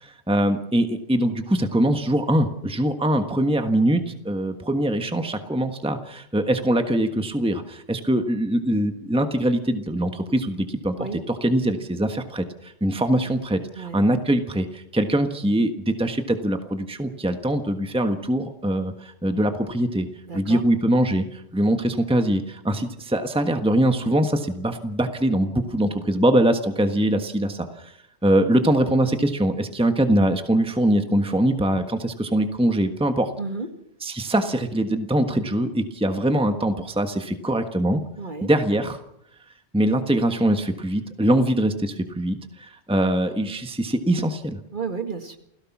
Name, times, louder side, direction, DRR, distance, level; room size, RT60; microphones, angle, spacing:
voice 1, 0.0-20.1 20.3-27.9 28.2-33.3 34.0-38.0 38.4-39.0 39.7-44.6, right 1 dB, 5° right, 6 dB, 1.4 m, -23 dB
voice 2, 20.3-20.6 33.4-33.7 38.2-38.5 44.7-45.4, right 4 dB, 45° right, 6 dB, 2.1 m, -32 dB
28.5 x 17.0 x 6.1 m, 0.76 s
omnidirectional pair, 1.1 m